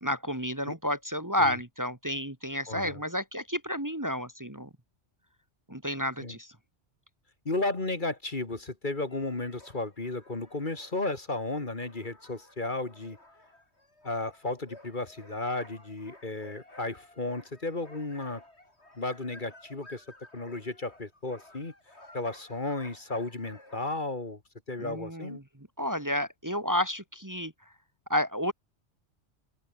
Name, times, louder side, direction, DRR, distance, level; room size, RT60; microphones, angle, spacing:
voice 1, 0.0-4.7 5.7-6.5 24.8-25.4 25.8-27.5 28.1-28.5, left 1 dB, 15° right, 1.9 m, -31 dB
voice 2, 2.7-3.0 6.2-6.4 7.5-13.2 14.0-18.4 19.0-20.1 20.3-21.7 22.1-24.4 24.7-25.4, left 2 dB, 45° left, 2.4 m, -34 dB
sound 1, 9.1-24.0, left 1 dB, 65° left, 6.9 m, -55 dB
open air
omnidirectional pair, 1.2 m